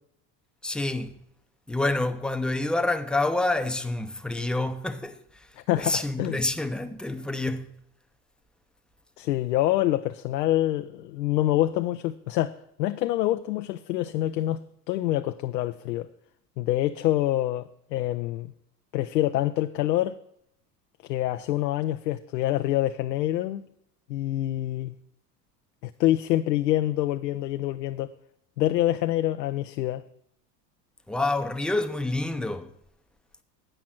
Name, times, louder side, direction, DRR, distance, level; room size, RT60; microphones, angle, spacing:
voice 1, 0.6-1.1 1.7-5.2 5.8-7.7 31.1-32.7, left 2 dB, ahead, 0.6 m, -27 dB
voice 2, 5.6-6.4 9.2-14.6 14.9-16.1 16.6-18.5 18.9-20.2 21.0-23.6 24.1-24.9 25.8-28.1 28.6-30.0, left 14 dB, 85° left, 0.6 m, -26 dB
9.0 x 6.0 x 7.5 m
hypercardioid pair, 90°, 48 cm